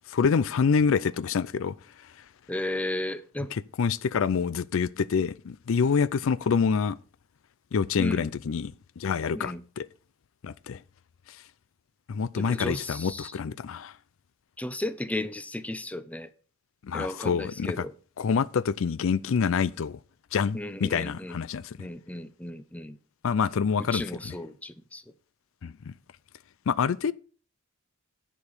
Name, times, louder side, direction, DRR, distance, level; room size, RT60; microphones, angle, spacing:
voice 1, 0.1-1.7 2.0-2.1 3.5-7.0 7.7-9.9 10.4-10.8 12.1-13.9 16.8-17.8 18.2-20.0 20.3-21.9 23.2-24.4 25.6-25.9 26.7-27.1, left 6 dB, 65° left, 0.4 m, -27 dB
voice 2, 2.5-3.5 8.0-8.3 9.3-9.6 12.3-13.3 14.6-16.3 16.9-17.9 20.5-21.4 21.8-23.0 23.9-25.0, left 1 dB, 5° left, 0.6 m, -34 dB
10.5 x 5.0 x 7.1 m
head